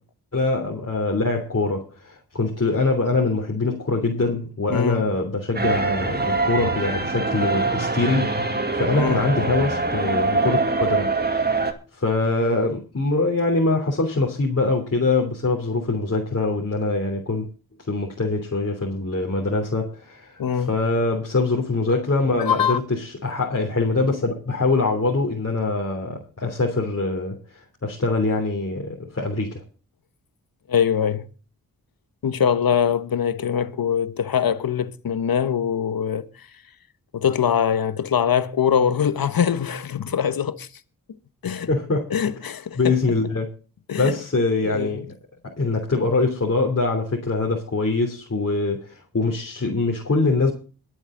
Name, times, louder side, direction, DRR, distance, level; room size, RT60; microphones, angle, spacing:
voice 1, 0.3-11.6 11.9-17.5 17.9-29.6 41.7-42.0 42.8-43.5 44.0-45.0 45.6-50.5, left 3 dB, 45° left, 3.3 m, -23 dB
voice 2, 4.7-5.0 9.0-9.2 20.4-20.7 22.4-22.8 30.7-31.3 32.2-36.5 37.1-40.7 41.4-41.7 42.1-43.0 43.9-44.1 44.6-45.0, left 8 dB, 75° left, 1.2 m, -23 dB
sound 1, 5.6-11.7, right 3 dB, 25° right, 2.2 m, -23 dB
22.5 x 8.1 x 3.9 m
cardioid pair, 50°, 36 cm